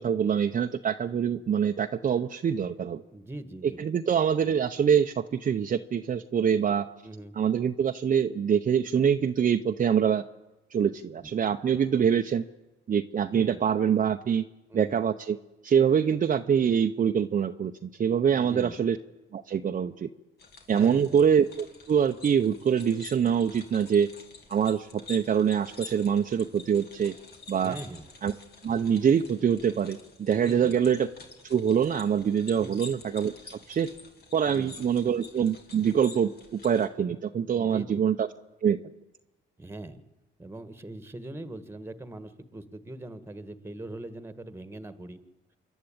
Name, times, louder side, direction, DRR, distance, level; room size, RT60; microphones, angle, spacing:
voice 1, 0.0-3.0 3.8-6.8 7.4-10.2 10.7-12.4 12.9-14.5 14.7-15.4 15.6-17.7 18.0-19.0 19.3-20.1 20.7-24.1 24.5-27.1 27.5-27.8 28.2-28.3 28.6-31.1 31.4-33.9 34.3-38.3 38.6-38.8, right 8 dB, 40° right, 5 dB, 0.7 m, -25 dB
voice 2, 3.1-3.8 7.0-7.3 11.2-11.3 13.3-13.6 14.7-15.0 18.3-18.8 20.7-21.2 27.6-28.1 30.4-30.7 32.6-32.8 34.5-34.7 37.5-38.0 39.6-40.0 40.4-45.2, right 1 dB, 10° right, 11 dB, 1.5 m, -41 dB
sound 1, 20.4-36.9, left 4 dB, 55° left, 2.7 m, -49 dB
26.5 x 11.0 x 8.7 m, 1.0 s
cardioid pair, 90°, 20 cm